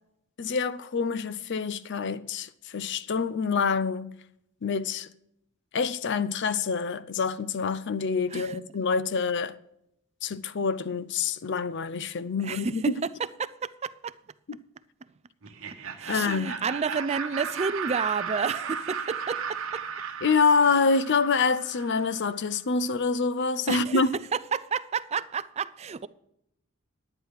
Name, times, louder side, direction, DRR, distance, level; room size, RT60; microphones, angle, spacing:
voice 1, 0.4-4.1 4.6-5.1 5.7-9.6 10.2-12.9 14.5-14.6 16.1-16.6 20.2-24.1, left 4 dB, 55° left, 0.6 m, -26 dB
voice 2, 12.4-12.7 13.4-14.1 16.0-19.8 23.7-24.0 24.5-26.1, right 5 dB, 30° right, 0.4 m, -30 dB
Laughter, 15.4-22.2, right 6 dB, 65° right, 1.1 m, -35 dB
11.0 x 9.6 x 4.7 m
head